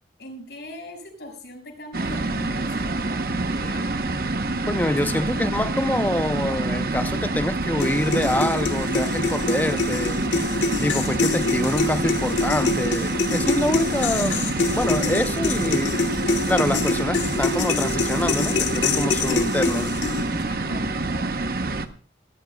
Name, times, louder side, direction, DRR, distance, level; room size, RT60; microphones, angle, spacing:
voice 1, 0.2-3.9 5.0-5.5 20.4-21.3, left 1 dB, 70° left, 5.6 m, -41 dB
sound 1, 1.9-21.9, right 2 dB, 55° right, 0.9 m, -27 dB
voice 2, 4.7-10.2 10.8-14.5 14.7-16.0 16.5-19.9, left 1 dB, 10° left, 0.5 m, -26 dB
sound 2, 7.8-20.4, left 4 dB, 90° left, 1.4 m, -26 dB
19.0 x 17.0 x 2.3 m
head